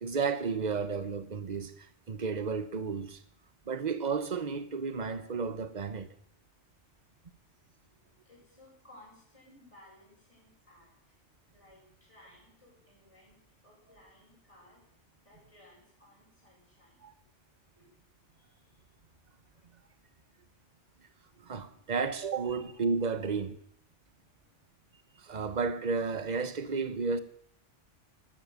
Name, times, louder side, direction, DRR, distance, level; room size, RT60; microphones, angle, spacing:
voice 1, 0.0-3.2 3.7-6.1 17.0-17.1 21.4-23.6 25.2-27.2, right 5 dB, 35° right, 1.2 m, -32 dB
voice 2, 8.2-11.1 11.5-14.8 15.2-17.0 17.8-17.9 18.3-18.8 24.3-24.5, left 1 dB, 25° left, 6.5 m, -59 dB
13.0 x 12.5 x 8.3 m
omnidirectional pair, 1.3 m